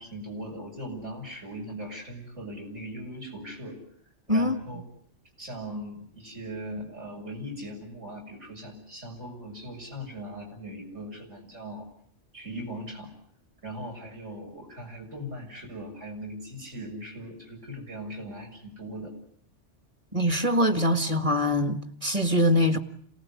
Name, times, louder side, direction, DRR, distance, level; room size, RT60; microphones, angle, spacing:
voice 1, 0.0-3.8 4.3-4.8 5.4-11.9 12.3-13.1 13.6-19.1, equal, 80° right, 7.3 m, -39 dB
voice 2, 20.1-22.8, left 1 dB, 30° right, 1.7 m, -23 dB
27.5 x 19.0 x 9.6 m
omnidirectional pair, 1.2 m